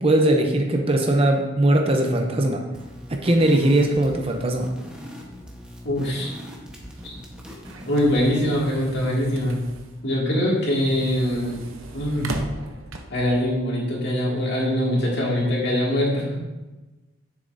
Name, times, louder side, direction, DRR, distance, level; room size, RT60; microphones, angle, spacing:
voice 1, 0.0-2.6 3.2-4.7, right 1 dB, 30° right, 3 dB, 0.7 m, -20 dB
sound 1, 2.7-8.2, equal, 5° right, 1.1 m, -41 dB
voice 2, 5.8-6.3 7.0-7.1 7.9-9.6 10.0-11.6 11.9-12.3 13.1-16.3, left 1 dB, 55° left, -4 dB, 2.3 m, -23 dB
sound 2, 6.8-13.4, right 2 dB, 80° right, 0.8 m, -39 dB
10.0 x 7.3 x 2.7 m, 1.1 s
head